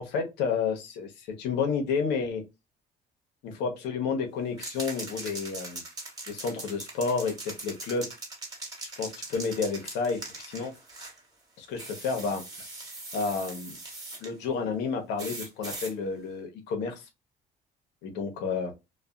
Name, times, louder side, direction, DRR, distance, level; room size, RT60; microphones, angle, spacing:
voice 1, 0.0-2.4 3.4-5.8 6.3-8.1 9.0-10.7 11.6-12.4 13.1-13.8 14.2-17.1 18.0-18.7, left 5 dB, 90° left, 0.8 m, -30 dB
sound 1, 4.6-11.2 11.8-14.3 15.2-15.9, right 2 dB, 25° right, 1.2 m, -41 dB
2.4 x 2.3 x 2.2 m
cardioid pair, 110°, 17 cm